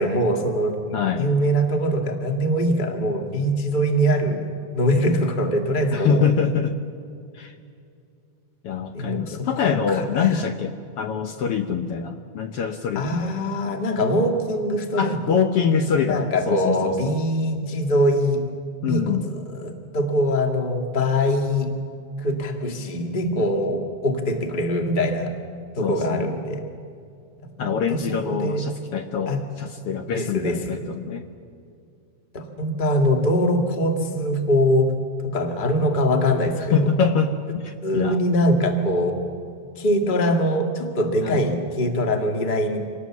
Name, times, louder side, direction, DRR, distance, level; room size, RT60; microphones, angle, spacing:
voice 1, 0.0-4.4 4.7-6.2 8.9-9.5 9.9-10.3 12.9-15.4 16.1-18.4 18.8-21.7 22.2-25.3 25.7-26.6 27.6-28.6 29.3-29.4 30.1-30.8 32.3-34.9 35.3-36.9 37.8-39.2 39.7-42.8, equal, 20° left, 3 dB, 1.4 m, -23 dB
voice 2, 0.9-1.3 5.9-6.8 7.3-7.5 8.6-13.4 15.0-17.2 18.8-19.3 25.8-26.3 27.6-31.3 36.6-38.2 41.2-41.4, left 6 dB, 70° left, 7 dB, 1.4 m, -24 dB
25.5 x 19.0 x 7.2 m, 2.4 s
omnidirectional pair, 3.5 m